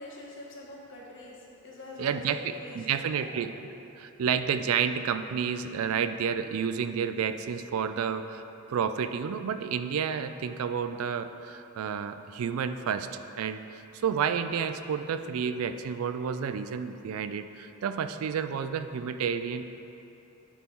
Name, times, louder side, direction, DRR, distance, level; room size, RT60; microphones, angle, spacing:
voice 1, 0.0-3.3, left 1 dB, 60° left, -3 dB, 1.2 m, -45 dB
voice 2, 2.0-3.5 4.0-8.4 8.7-13.1 13.4-19.7, right 7 dB, 70° right, 10 dB, 0.3 m, -30 dB
10.0 x 3.6 x 4.4 m, 2.9 s
head